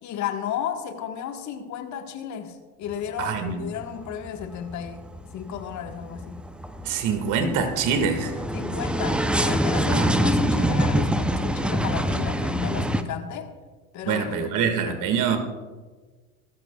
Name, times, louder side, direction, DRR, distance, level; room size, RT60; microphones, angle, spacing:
voice 1, 0.0-5.1 5.3-6.4 8.5-13.5 13.9-14.5, left 9 dB, 45° left, 6 dB, 1.5 m, -33 dB
sound 1, 2.9-3.5 3.8-13.0, equal, 5° right, 0.6 m, -25 dB
voice 2, 3.2-3.6 6.8-8.4 9.9-10.3 14.0-15.4, right 6 dB, 45° right, 7 dB, 2.0 m, -25 dB
20.0 x 12.5 x 2.4 m, 1.4 s
hypercardioid pair, 90°, 41 cm